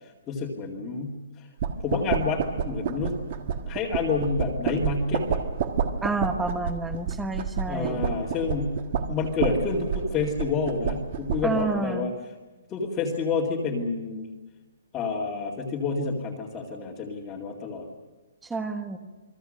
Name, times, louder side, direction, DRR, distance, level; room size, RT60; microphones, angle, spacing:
voice 1, 0.3-1.5 1.8-3.2 3.7-5.4 7.7-8.8 9.1-12.1 12.7-14.3 14.9-17.8, left 4 dB, 15° left, -5 dB, 2.2 m, -28 dB
sound 1, 1.6-11.7, right 7 dB, 35° right, 1.5 m, -30 dB
voice 2, 6.0-8.1 11.4-12.1 18.4-19.0, right 3 dB, 5° right, 7 dB, 1.3 m, -29 dB
29.0 x 22.0 x 6.5 m, 1.2 s
hypercardioid pair, 175°, 0 cm